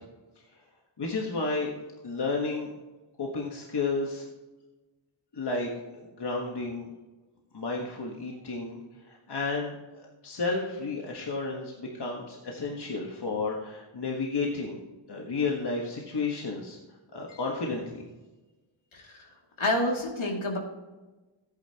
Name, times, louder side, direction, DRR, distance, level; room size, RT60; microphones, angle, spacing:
voice 1, 1.0-1.7 2.0-2.7 3.2-4.3 5.3-6.9 7.5-8.8 9.1-14.8 15.1-16.8 17.1-18.0, left 3 dB, 55° left, -1 dB, 1.5 m, -32 dB
voice 2, 18.9-19.3 19.6-20.6, left 1 dB, 75° left, 0 dB, 2.6 m, -28 dB
14.5 x 9.2 x 2.9 m, 1.2 s
wide cardioid pair, 130°, 48 cm